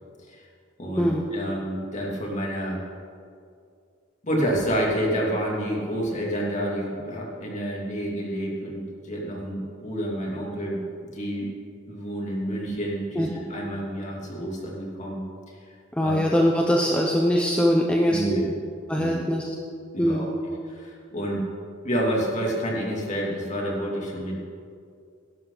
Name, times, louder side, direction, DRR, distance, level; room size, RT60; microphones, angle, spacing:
voice 1, 0.8-2.8 4.2-10.8 11.1-11.5 11.9-15.2 15.5-15.6 16.0-16.2 18.1-18.5 19.0-19.2 19.9-20.3 20.7-21.4 21.8-24.4, equal, 35° left, -2 dB, 2.8 m, -29 dB
voice 2, 16.0-18.2 18.9-19.5 20.0-20.3, equal, 5° left, -1 dB, 0.8 m, -22 dB
17.5 x 12.0 x 4.0 m, 2.3 s
head